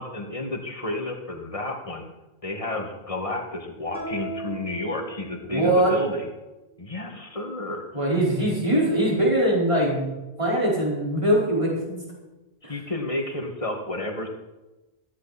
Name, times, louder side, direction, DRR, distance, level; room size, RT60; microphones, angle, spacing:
voice 1, 0.0-2.0 2.4-6.3 6.8-7.8 12.6-14.3, left 1 dB, 30° left, 2 dB, 2.2 m, -31 dB
sound 1, 3.9-5.7, right 2 dB, 60° right, 6.3 m, -37 dB
voice 2, 5.5-5.9 7.9-10.1 10.4-12.0 12.6-12.7, right 1 dB, 30° right, -4 dB, 5.0 m, -22 dB
17.5 x 14.0 x 4.3 m, 1.1 s
omnidirectional pair, 1.1 m